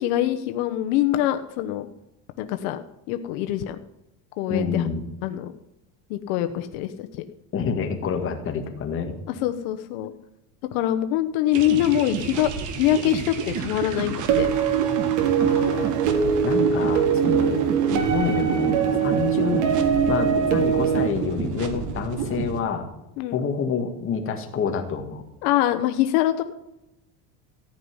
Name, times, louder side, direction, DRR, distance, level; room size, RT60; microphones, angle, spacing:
voice 1, 0.0-1.9 2.4-3.8 4.4-4.9 5.2-5.5 6.1-7.2 9.3-10.1 10.7-12.5 12.7-14.5 23.2-23.4 25.4-26.4, left 13 dB, 75° left, 8 dB, 1.0 m, -24 dB
voice 2, 4.5-5.0 7.5-9.2 15.4-16.0 16.4-17.6 17.9-19.7 20.1-22.9 23.3-25.2, left 6 dB, 30° left, 4 dB, 1.8 m, -28 dB
sound 1, 11.5-22.6, right 6 dB, 45° right, 1.6 m, -30 dB
sound 2, 14.3-21.1, right 7 dB, 70° right, 2.6 m, -22 dB
14.5 x 5.6 x 9.6 m, 0.91 s
cardioid pair, 160°, 42 cm